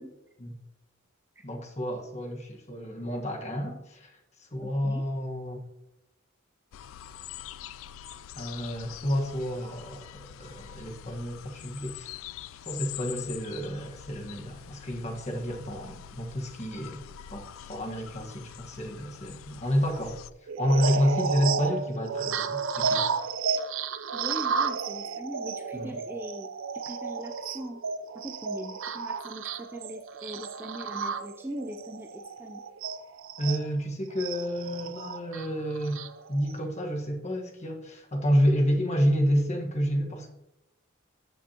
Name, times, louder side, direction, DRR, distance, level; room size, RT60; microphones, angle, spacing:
voice 1, 1.4-4.1 4.4-5.6 8.4-10.1 10.4-12.2 12.6-17.0 17.3-20.2 20.6-23.0 25.7-25.9 33.4-36.0 36.3-40.3, equal, 35° left, 2 dB, 1.3 m, -29 dB
voice 2, 4.6-5.1 24.1-26.5 26.7-27.8 28.1-32.6, right 1 dB, 10° right, 3 dB, 0.4 m, -40 dB
sound 1, 6.7-20.3, left 10 dB, 70° left, 0.3 m, -44 dB
sound 2, 20.5-33.6 34.2-36.6, right 5 dB, 65° right, 0.6 m, -32 dB
14.5 x 6.1 x 2.9 m, 0.91 s
head